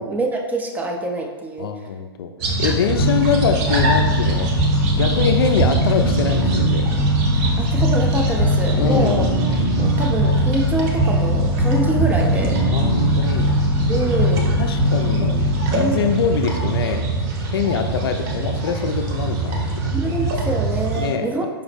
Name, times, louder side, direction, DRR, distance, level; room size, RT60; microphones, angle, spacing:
voice 1, 0.0-1.7 2.6-3.0 7.6-9.3 9.8-12.7 13.9-14.5 15.2-15.4 15.7-16.1 19.9-21.6, right 2 dB, 10° right, 1 dB, 0.3 m, -25 dB
voice 2, 1.6-4.5 4.9-6.9 8.7-9.2 12.7-13.5 14.0-14.2 14.6-15.3 15.7-17.1 17.5-20.2 20.9-21.3, left 6 dB, 65° left, 6 dB, 0.4 m, -24 dB
sound 1, 2.4-21.1, right 3 dB, 40° right, 0.7 m, -24 dB
sound 2, 3.0-15.9, left 1 dB, 30° left, 0.8 m, -21 dB
5.0 x 2.0 x 3.2 m, 1.4 s
hypercardioid pair, 110°, 13 cm